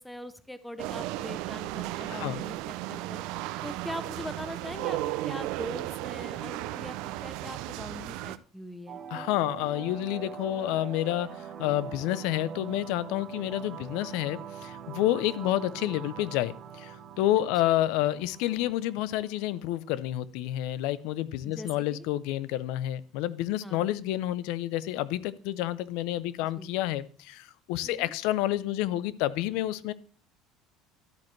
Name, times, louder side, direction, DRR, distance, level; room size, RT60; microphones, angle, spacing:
voice 1, 0.0-3.2 3.6-5.0 5.2-9.3 13.6-13.8 15.4-15.6 17.6-17.8 21.4-22.1 23.6-23.8 26.6-26.7 27.8-28.1, left 1 dB, 5° left, 13 dB, 0.5 m, -42 dB
sound 1, 0.8-8.4, right 16 dB, 60° right, 0.4 m, -35 dB
voice 2, 2.1-2.4 9.1-11.3 11.6-29.9, left 14 dB, 65° left, 18 dB, 0.5 m, -29 dB
sound 2, 8.9-19.9, right 8 dB, 30° right, 1.1 m, -43 dB
12.0 x 8.7 x 3.2 m, 0.42 s
cardioid pair, 180°, 0 cm